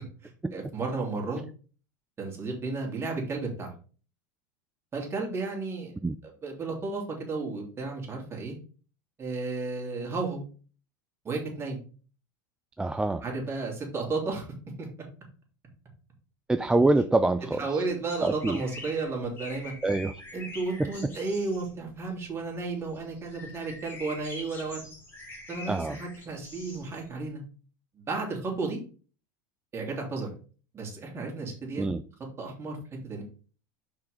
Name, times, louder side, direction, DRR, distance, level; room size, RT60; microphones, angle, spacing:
voice 1, 0.2-1.4 2.2-3.7 4.9-6.0 6.4-8.6 9.2-10.4 11.2-11.8 13.2-14.5 14.8-14.9 17.6-19.7 20.3-24.9 25.5-27.4 27.9-28.8 29.7-30.3 30.7-31.9 32.4-32.8 33.0-33.2, right 3 dB, 25° right, -1 dB, 3.0 m, -33 dB
voice 2, 12.8-13.2 16.5-17.8 18.2-18.6 19.8-20.1 20.8-21.1 25.7-26.0 31.8-32.0, right 2 dB, 5° right, 10 dB, 0.3 m, -25 dB
sound 1, 18.1-27.2, left 2 dB, 20° left, 2.7 m, -45 dB
5.7 x 4.7 x 4.9 m, 0.39 s
supercardioid pair, 115°, 11 cm